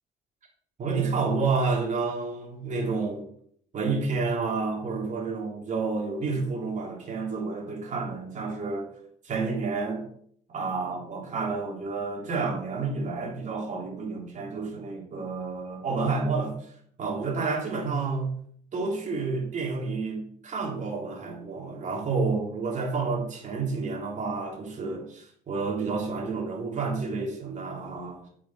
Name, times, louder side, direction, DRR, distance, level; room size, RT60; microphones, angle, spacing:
voice 1, 0.8-3.3 3.7-8.9 9.2-10.0 10.5-16.5 17.0-18.4 18.7-28.2, right 4 dB, 45° right, 3.3 m, -30 dB
10.5 x 6.3 x 4.3 m
cardioid pair, 110°, 17 cm